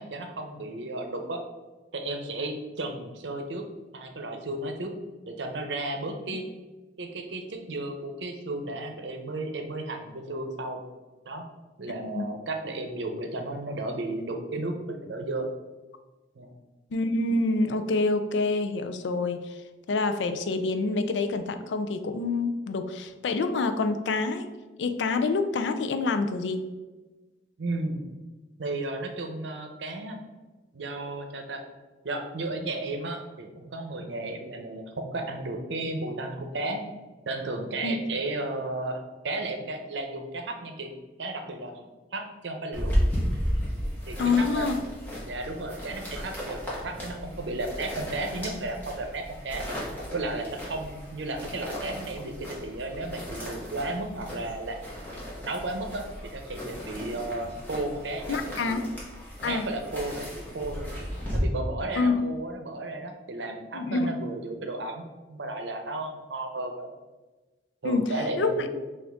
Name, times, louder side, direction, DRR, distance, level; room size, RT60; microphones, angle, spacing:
voice 1, 0.0-1.4 1.9-3.7 3.9-4.9 5.3-6.5 7.0-10.8 11.2-11.5 11.8-15.5 16.4-16.5 27.6-28.0 28.6-30.2 30.7-31.6 32.0-36.8 37.3-40.9 41.2-41.7 42.1-42.9 44.1-44.7 45.3-49.6 50.1-54.8 55.4-58.8 59.4-60.9 61.3-66.9 67.8-68.7, right 2 dB, 80° right, 5 dB, 0.7 m, -34 dB
voice 2, 11.9-12.3 16.9-19.5 19.9-24.5 24.8-26.6 37.8-38.0 44.2-44.8 58.3-58.9 59.4-59.6 62.0-62.2 63.7-64.1 67.8-68.5, left 3 dB, 85° left, 9 dB, 0.4 m, -27 dB
sound 1, 42.7-61.4, equal, 10° left, 1.1 m, -35 dB
6.0 x 2.5 x 3.5 m, 1.2 s
head